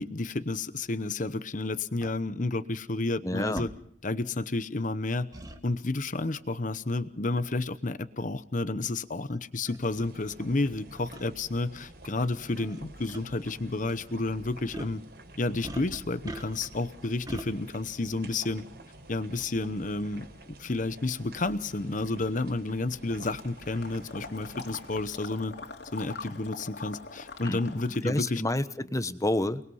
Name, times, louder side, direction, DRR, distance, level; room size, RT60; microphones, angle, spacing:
voice 1, 0.0-3.7 4.0-5.3 5.6-15.0 15.4-18.7 19.1-20.3 20.6-25.6 25.9-28.4, left 2 dB, 45° left, 13 dB, 0.9 m, -31 dB
sound 1, 2.0-2.1 3.6-3.7 5.3-5.6 7.4-7.6 8.4-8.5 9.3-9.4 9.7-9.8 11.1-11.3 12.6-12.8 13.1-13.2 14.7-15.0 15.6-16.8 17.3-17.5, right 1 dB, 20° right, 2.1 m, -41 dB
voice 2, 3.2-3.7 27.4-29.6, left 1 dB, 20° left, 12 dB, 1.1 m, -29 dB
sound 2, 9.9-25.1, right 1 dB, 65° right, 4.6 m, -49 dB
Water / Liquid, 23.3-28.1, left 3 dB, 65° left, 2.9 m, -43 dB
29.0 x 21.0 x 5.7 m, 0.65 s
head